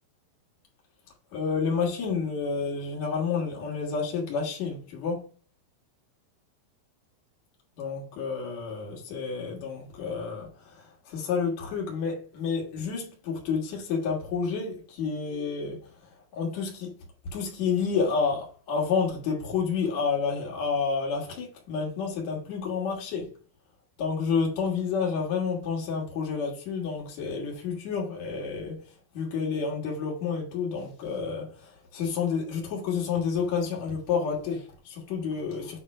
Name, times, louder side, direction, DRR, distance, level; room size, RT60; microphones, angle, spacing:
voice 1, 1.3-5.2 7.8-15.9 16.3-16.9 17.3-23.3 24.0-28.8 29.1-35.8, left 5 dB, 80° left, 1.6 m, -30 dB
8.5 x 3.2 x 4.2 m
omnidirectional pair, 5.9 m